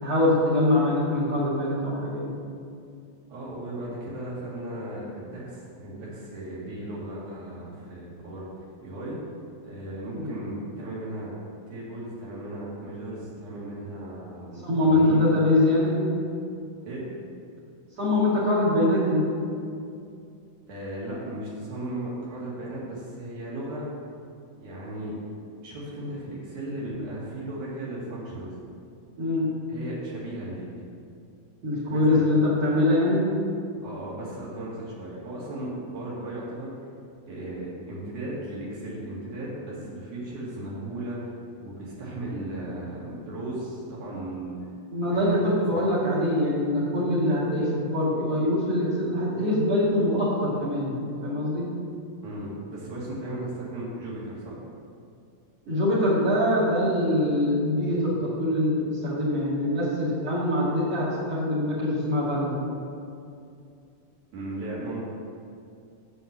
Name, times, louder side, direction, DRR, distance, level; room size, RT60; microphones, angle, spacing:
voice 1, 0.0-2.3 10.2-10.3 14.6-16.0 18.0-19.3 29.2-29.5 31.6-33.3 44.9-51.7 55.7-62.6, left 1 dB, 50° right, -7 dB, 3.1 m, -23 dB
voice 2, 3.3-8.5 8.8-9.2 9.6-11.3 11.7-15.2 16.9-17.1 20.7-23.9 24.6-25.2 25.6-28.5 29.7-30.9 31.9-32.3 33.8-36.7 37.3-41.3 41.6-44.7 45.1-45.4 45.7-45.8 52.2-54.6 64.3-65.0, right 1 dB, 70° right, -6 dB, 3.7 m, -36 dB
9.0 x 7.1 x 6.0 m, 2.5 s
omnidirectional pair, 3.6 m